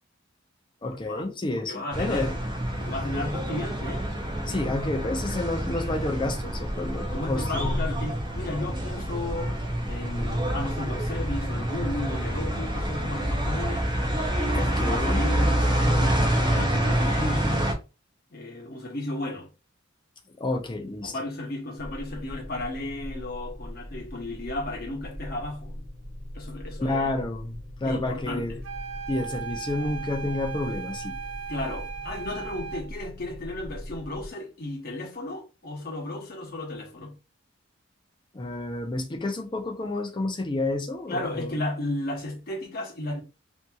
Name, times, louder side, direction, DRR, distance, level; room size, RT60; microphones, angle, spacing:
voice 1, 0.8-2.4 4.5-7.9 14.5-15.2 20.4-21.1 26.8-28.6 29.1-31.2 38.3-41.5, left 2 dB, 25° left, 0.5 m, -30 dB
voice 2, 1.7-2.3 2.8-4.1 5.2-5.3 7.1-9.6 9.9-13.9 14.5-17.7 18.3-19.5 21.0-25.8 26.3-27.1 27.8-28.6 31.5-37.1 41.1-43.2, left 2 dB, 50° left, 0.9 m, -34 dB
sound 1, 1.9-17.7, right 1 dB, 25° right, 0.5 m, -27 dB
sound 2, 21.8-34.3, equal, 55° right, 1.2 m, -41 dB
sound 3, 28.6-32.9, right 7 dB, 75° right, 0.5 m, -37 dB
2.7 x 2.7 x 2.3 m
head